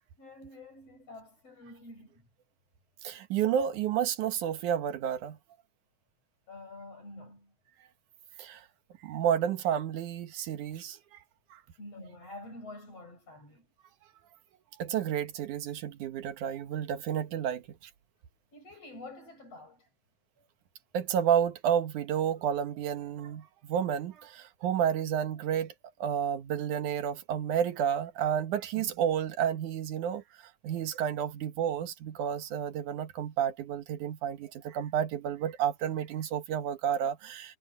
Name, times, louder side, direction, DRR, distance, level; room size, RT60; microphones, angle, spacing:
voice 1, 0.2-2.2 6.5-7.5 11.8-13.7 18.5-19.9, left 2 dB, 50° left, 8.7 m, -47 dB
voice 2, 3.0-5.4 8.4-8.6 9.0-11.0 11.5-11.6 14.8-17.9 20.9-25.7 26.0-30.2 30.6-37.6, right 9 dB, 80° right, 2.8 m, -31 dB
omnidirectional pair, 3.5 m